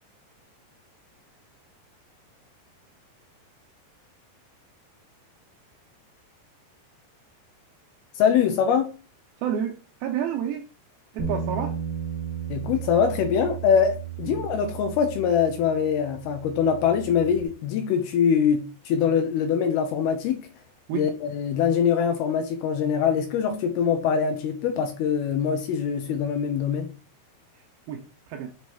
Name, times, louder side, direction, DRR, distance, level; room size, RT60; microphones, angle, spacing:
voice 1, 8.2-8.9 12.5-20.5 20.9-26.9, left 7 dB, 80° left, 2.3 m, -23 dB
voice 2, 9.4-10.6 11.1-11.8 14.3-14.4 20.9-21.0 27.9-28.0 28.3-28.5, right 9 dB, 85° right, 2.2 m, -29 dB
Bass guitar, 11.2-17.4, right 7 dB, 55° right, 2.2 m, -34 dB
7.0 x 3.1 x 4.4 m
omnidirectional pair, 4.9 m